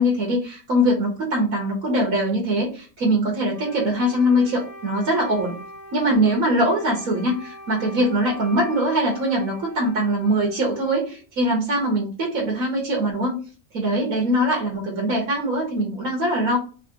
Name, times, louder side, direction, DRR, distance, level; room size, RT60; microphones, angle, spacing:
voice 1, 0.0-5.5 5.9-13.4 13.7-16.6, equal, 80° right, -2 dB, 1.6 m, -22 dB
Wind instrument woodwind instrument, 3.5-11.2, right 1 dB, 65° left, 1.6 m, -42 dB
4.1 x 2.9 x 2.9 m, 0.37 s
omnidirectional pair, 1.4 m